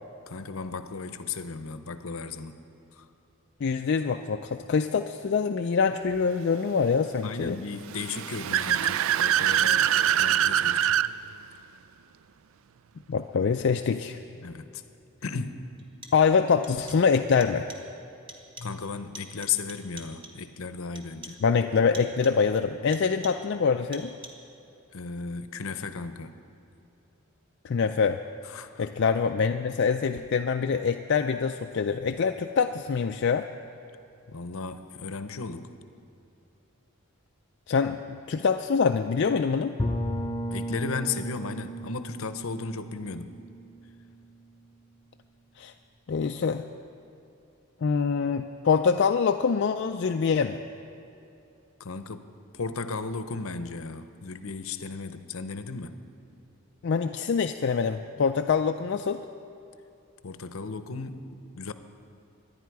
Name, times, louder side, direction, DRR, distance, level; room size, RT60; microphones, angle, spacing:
voice 1, 0.3-2.6 3.0-3.1 7.2-9.9 10.2-11.0 14.4-14.8 15.2-15.9 18.6-21.4 24.9-26.3 28.4-28.9 34.3-35.7 40.5-43.4 51.8-56.0 60.2-61.7, left 4 dB, 70° left, 11 dB, 0.7 m, -35 dB
voice 2, 3.6-7.6 13.1-14.2 16.1-17.7 21.4-24.1 27.6-28.2 28.8-33.5 37.7-38.0 38.3-39.7 45.6-45.7 46.1-46.6 47.8-50.6 56.8-59.2, left 5 dB, 55° left, 6 dB, 0.4 m, -25 dB
Car / Accelerating revving vroom, 7.9-11.1, right 10 dB, 70° right, 0.3 m, -24 dB
sound 1, 14.7-14.8 15.8-16.4 16.6-17.2 17.4-18.0 18.3-18.9 19.1-20.5 21.0-21.5 21.9-22.5 22.9-23.6 23.9-24.6, right 3 dB, 25° right, 1.3 m, -47 dB
Bowed string instrument, 39.8-44.6, equal, 20° left, 0.7 m, -34 dB
25.0 x 10.5 x 4.7 m, 2.7 s
head